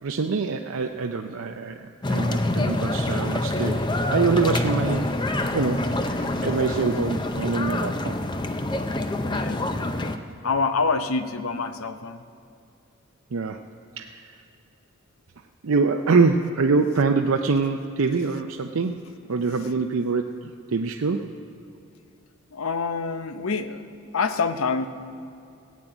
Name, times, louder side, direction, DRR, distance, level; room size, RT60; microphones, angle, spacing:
voice 1, 0.0-5.1 5.5-8.1 13.3-13.7 14.0-14.3 15.6-21.3, right 4 dB, 80° right, 4 dB, 0.5 m, -25 dB
sound 1, 2.0-10.2, left 1 dB, 20° left, 0.5 m, -26 dB
voice 2, 9.3-9.6 10.4-12.2 22.5-23.8 24.1-24.9, left 4 dB, 85° left, 10 dB, 0.8 m, -26 dB
15.5 x 7.5 x 9.0 m, 2.6 s
head